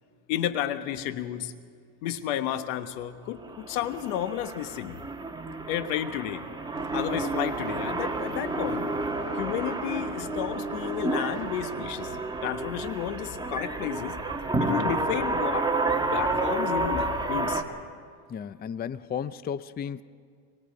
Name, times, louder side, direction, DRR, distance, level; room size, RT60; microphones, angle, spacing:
voice 1, 0.3-1.5 2.0-5.0 5.7-6.4 6.9-8.9 9.4-14.2 14.6-15.7 16.0-17.6, left 11 dB, 90° left, 10 dB, 1.3 m, -32 dB
sound 1, 3.4-17.6, right 2 dB, 10° right, 1.9 m, -30 dB
sound 2, 6.7-11.9, right 11 dB, 90° right, 1.1 m, -45 dB
voice 2, 18.3-20.0, left 8 dB, 20° left, 15 dB, 0.5 m, -34 dB
25.0 x 21.0 x 5.3 m, 2.1 s
supercardioid pair, 105°, 43 cm